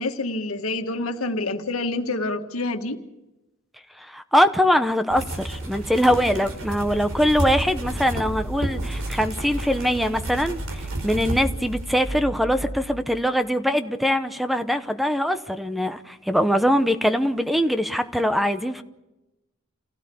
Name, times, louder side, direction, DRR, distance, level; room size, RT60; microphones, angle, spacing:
voice 1, 0.0-3.0, left 2 dB, 85° left, 1.7 m, -27 dB
voice 2, 4.0-18.8, equal, ahead, 0.8 m, -22 dB
sound 1, 5.1-12.1, right 1 dB, 75° right, 5.3 m, -31 dB
sound 2, 7.8-13.3, right 1 dB, 90° right, 4.0 m, -35 dB
28.5 x 16.5 x 7.0 m
head